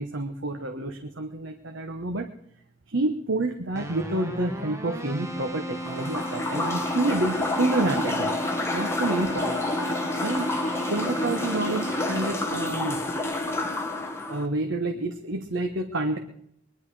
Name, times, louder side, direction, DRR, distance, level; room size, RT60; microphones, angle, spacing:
voice 1, 0.0-2.3 2.9-8.3 8.7-9.6 10.2-10.5 10.9-13.0 14.3-16.2, right 2 dB, 70° right, 4 dB, 1.3 m, -28 dB
Keyboard (musical), 3.7-12.7, equal, 15° right, 1.3 m, -35 dB
sound 1, 5.8-14.5, left 2 dB, 15° left, 1.5 m, -29 dB
22.0 x 11.0 x 4.9 m, 0.72 s
head